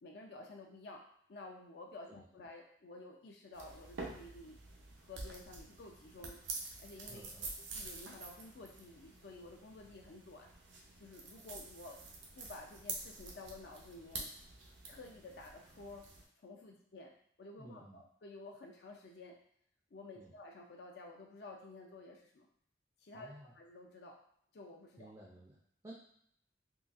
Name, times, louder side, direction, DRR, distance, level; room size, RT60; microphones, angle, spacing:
voice 1, 0.0-1.0 1.3-4.6 5.1-6.4 6.8-7.3 7.7-10.5 11.0-12.0 12.4-14.3 14.9-16.0 16.4-17.1 17.4-19.4 19.9-22.5 23.0-24.2 24.5-25.1, left 2 dB, 60° left, 1 dB, 0.4 m, -52 dB
sound 1, 3.5-16.2, right 3 dB, 85° right, 0.6 m, -48 dB
voice 2, 7.1-7.5 17.6-18.0 20.2-20.3 23.1-23.5 25.0-25.6 25.8-25.9, right 1 dB, 20° right, -3 dB, 0.4 m, -54 dB
3.8 x 2.3 x 2.4 m, 0.68 s
head